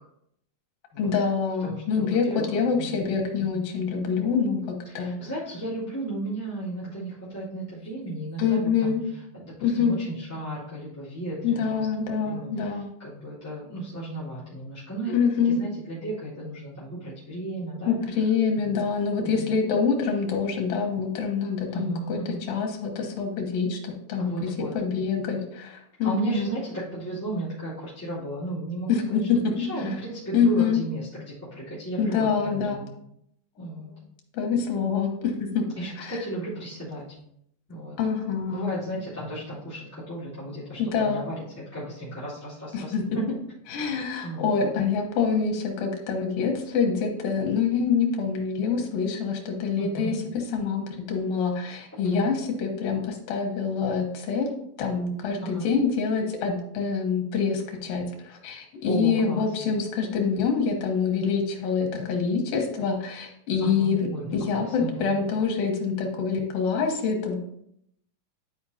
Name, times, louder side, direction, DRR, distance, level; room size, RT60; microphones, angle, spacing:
voice 1, 1.0-5.1 8.4-9.0 9.6-10.0 11.4-12.9 15.1-15.6 17.9-22.2 22.5-26.5 28.9-29.5 29.8-30.0 30.3-30.8 32.0-32.8 34.3-35.7 36.0-36.1 38.0-38.7 40.8-41.3 42.7-43.2 43.7-50.1 50.5-64.1 64.3-67.4, left 5 dB, 85° left, 2 dB, 3.0 m, -26 dB
voice 2, 1.6-2.9 3.4-3.6 4.9-8.9 9.3-11.9 12.2-17.9 18.7-18.9 19.2-19.6 21.7-22.4 24.2-24.7 26.0-29.3 29.6-32.9 33.6-33.9 35.8-37.0 37.7-38.0 38.5-41.4 41.7-43.3 44.2-44.5 49.8-50.1 55.4-55.7 58.9-59.5 63.6-65.2, right 2 dB, 5° left, -13 dB, 2.3 m, -34 dB
11.5 x 4.9 x 2.8 m, 0.74 s
omnidirectional pair, 3.8 m